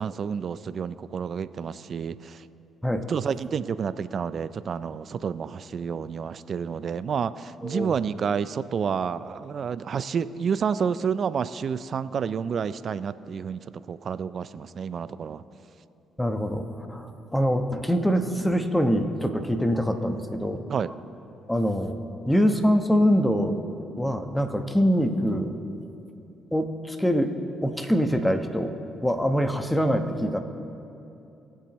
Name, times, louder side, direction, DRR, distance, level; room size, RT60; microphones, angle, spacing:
voice 1, 0.0-2.5 3.1-15.4 20.7-20.9, right 6 dB, 55° right, 15 dB, 0.4 m, -29 dB
voice 2, 7.6-7.9 16.2-20.6 21.5-23.6 24.0-25.5 26.5-27.3 27.6-28.7 29.0-30.4, equal, 5° left, 6 dB, 1.0 m, -24 dB
20.5 x 7.4 x 3.1 m, 2.9 s
supercardioid pair, 60°, 0 cm